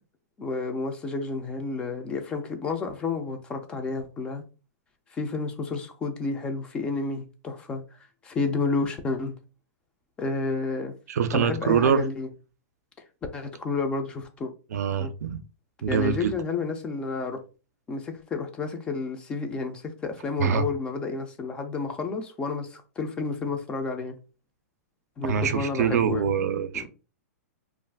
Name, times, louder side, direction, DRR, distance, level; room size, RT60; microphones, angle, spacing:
voice 1, 0.4-4.4 5.1-7.8 8.2-9.3 10.2-10.9 11.3-12.3 13.3-14.5 15.0-15.1 15.9-17.4 17.9-24.2 25.2-26.2 26.7-26.9, left 4 dB, 10° left, 0.3 m, -30 dB
voice 2, 11.1-12.0 14.7-15.4 15.8-16.3 20.4-20.7 25.2-26.9, right 7 dB, 75° right, 0.4 m, -24 dB
2.4 x 2.3 x 3.3 m
hypercardioid pair, 165°, 9 cm